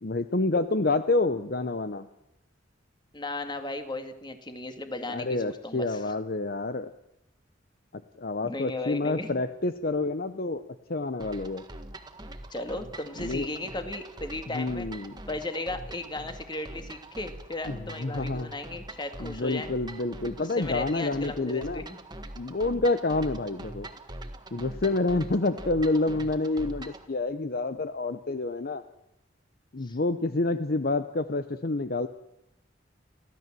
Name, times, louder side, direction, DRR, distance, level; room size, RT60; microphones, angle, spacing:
voice 1, 0.0-2.1 5.1-6.9 7.9-10.6 10.9-11.6 13.2-13.5 14.5-15.2 17.7-18.5 19.2-21.8 22.4-23.9 24.5-28.8 29.7-32.1, left 2 dB, 50° left, 11 dB, 0.8 m, -28 dB
voice 2, 3.1-6.0 8.4-9.4 12.5-14.9 15.3-19.7 20.4-22.0 29.8-30.0, left 2 dB, 25° left, 7 dB, 2.2 m, -36 dB
sound 1, 11.2-27.1, right 1 dB, 20° right, 1.6 m, -43 dB
30.0 x 12.5 x 7.6 m, 0.86 s
head